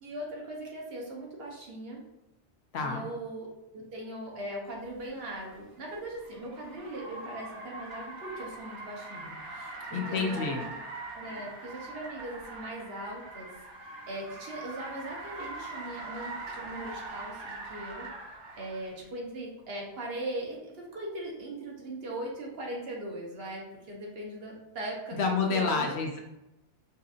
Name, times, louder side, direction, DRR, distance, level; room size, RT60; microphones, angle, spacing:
voice 1, 0.0-2.0 2.8-10.8 11.1-13.5 14.1-18.1 18.6-25.9, right 1 dB, 60° right, -2 dB, 1.1 m, -40 dB
Car, 5.0-18.9, right 2 dB, 80° right, 1.2 m, -42 dB
voice 2, 9.9-10.6 25.2-26.2, left 4 dB, 70° left, 2 dB, 0.9 m, -28 dB
5.5 x 2.6 x 2.4 m, 0.91 s
omnidirectional pair, 1.2 m